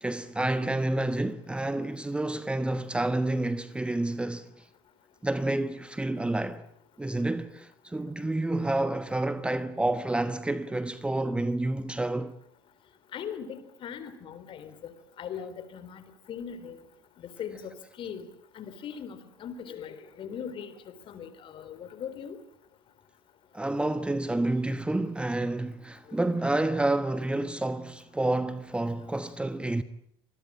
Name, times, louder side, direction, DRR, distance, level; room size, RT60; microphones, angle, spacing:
voice 1, 0.0-4.5 5.2-6.7 7.0-12.3 23.5-29.8, right 2 dB, 10° right, 1.2 m, -29 dB
voice 2, 13.1-14.9 15.2-16.8 17.2-18.3 18.5-22.4 26.1-26.2, left 7 dB, 45° left, 4.0 m, -40 dB
26.5 x 21.0 x 8.8 m
hypercardioid pair, 70°, 13 cm